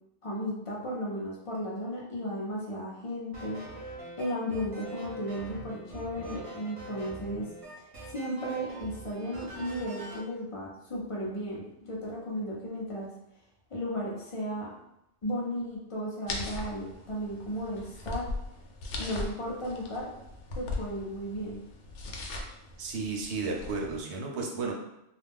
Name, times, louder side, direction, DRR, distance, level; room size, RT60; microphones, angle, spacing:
voice 1, 0.2-3.6 4.2-7.5 7.8-13.1 13.7-14.7 15.2-18.3 19.0-20.1 20.5-21.6, equal, 45° left, -3 dB, 0.4 m, -35 dB
sound 1, 3.3-10.3, right 2 dB, 35° right, 0.7 m, -43 dB
sound 2, 16.3-24.0, left 2 dB, 75° left, 0.9 m, -39 dB
voice 2, 22.8-24.7, right 4 dB, 70° right, 0 dB, 0.9 m, -33 dB
2.4 x 2.1 x 3.4 m, 0.84 s
omnidirectional pair, 1.2 m